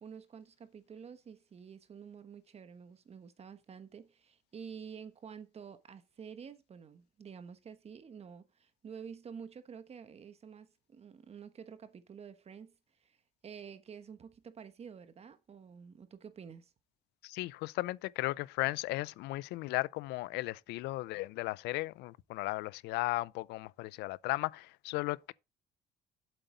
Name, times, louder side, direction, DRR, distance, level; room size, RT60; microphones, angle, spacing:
voice 1, 0.0-12.7 13.0-13.2 13.4-16.7, right 7 dB, 40° right, 1.2 m, -49 dB
voice 2, 17.2-25.3, left 20 dB, 85° left, 0.4 m, -36 dB
7.9 x 7.9 x 3.9 m
cardioid pair, 110°, 17 cm